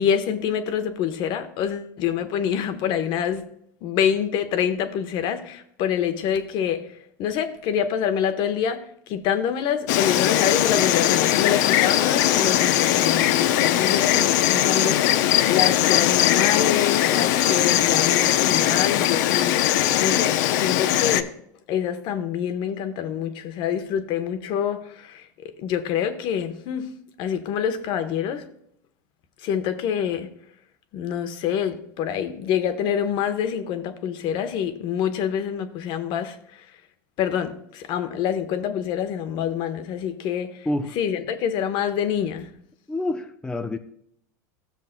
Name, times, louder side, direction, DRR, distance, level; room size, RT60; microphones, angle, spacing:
voice 1, 0.0-3.5 3.8-21.3 21.7-26.9 27.2-28.4 29.4-30.3 30.9-36.7 37.2-40.7 41.0-42.5, left 8 dB, 50° left, 1.1 m, -26 dB
Insect, 9.9-21.2, left 13 dB, 70° left, 0.6 m, -20 dB
voice 2, 40.7-41.0 42.9-43.8, left 1 dB, 10° left, 0.5 m, -27 dB
15.5 x 7.2 x 2.2 m
supercardioid pair, 120°, 10 cm